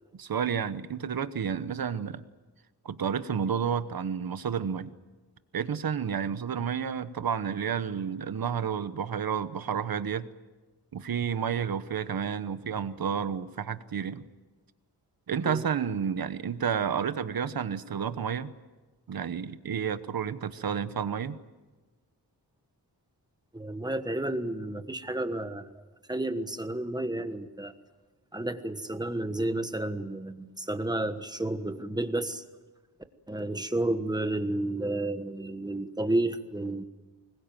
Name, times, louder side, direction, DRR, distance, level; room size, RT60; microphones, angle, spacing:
voice 1, 0.2-2.2 2.8-4.9 5.5-10.3 10.9-14.2 15.3-18.5 19.1-21.4, right 7 dB, 60° right, 13 dB, 1.1 m, -31 dB
voice 2, 23.5-25.7 26.1-27.7 28.3-32.4 33.3-36.8, right 1 dB, 10° right, 9 dB, 1.3 m, -31 dB
25.0 x 21.5 x 9.1 m, 1.2 s
wide cardioid pair, 175°, 40 cm